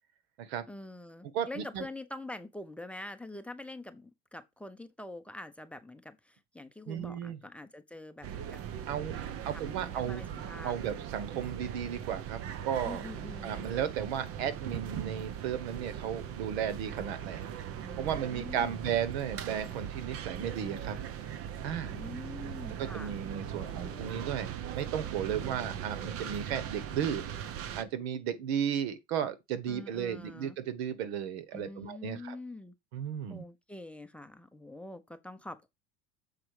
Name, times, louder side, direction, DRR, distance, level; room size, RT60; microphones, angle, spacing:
voice 1, 0.7-8.6 8.9-11.0 12.8-13.7 17.8-18.9 21.8-23.2 23.6-24.2 25.4-26.1 29.7-30.6 31.5-32.7 33.3-35.7, left 2 dB, 5° left, 0.7 m, -45 dB
voice 2, 1.3-1.8 6.9-7.4 8.9-9.1 9.4-10.2 10.6-13.0 13.4-17.4 18.0-21.0 21.6-22.0 22.8-27.2 27.8-32.4 32.9-33.4, right 9 dB, 90° right, 1.3 m, -34 dB
sound 1, 8.2-27.8, right 9 dB, 45° right, 0.9 m, -40 dB
7.5 x 4.6 x 4.8 m
supercardioid pair, 120°, 31 cm